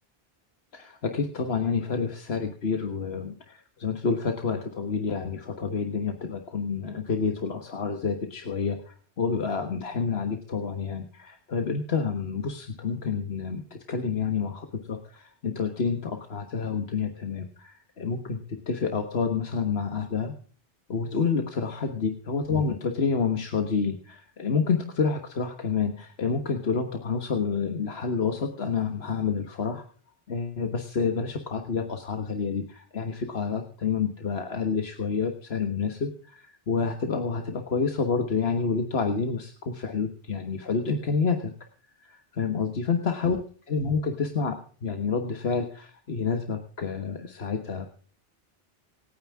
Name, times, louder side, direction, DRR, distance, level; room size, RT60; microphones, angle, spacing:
voice 1, 0.7-20.3 20.9-29.8 30.3-41.5 42.0-43.4 43.7-47.9, left 5 dB, 80° left, 5 dB, 1.7 m, -29 dB
26.5 x 9.3 x 3.6 m, 0.43 s
omnidirectional pair, 1.0 m